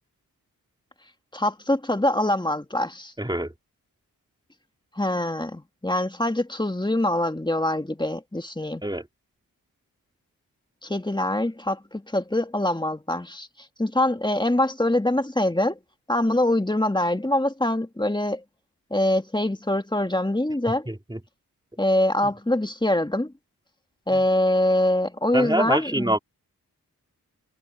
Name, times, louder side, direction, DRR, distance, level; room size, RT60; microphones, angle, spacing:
voice 1, 1.3-3.1 5.0-8.8 10.8-13.5 13.8-15.8 16.1-18.4 18.9-20.9 21.8-23.3 24.1-26.2, left 1 dB, 10° left, 1.9 m, -24 dB
voice 2, 3.2-3.5 8.8-9.1 20.9-21.2 22.2-22.3 24.1-24.2 25.3-26.2, right 1 dB, 10° right, 3.6 m, -26 dB
cardioid pair, 50°, 36 cm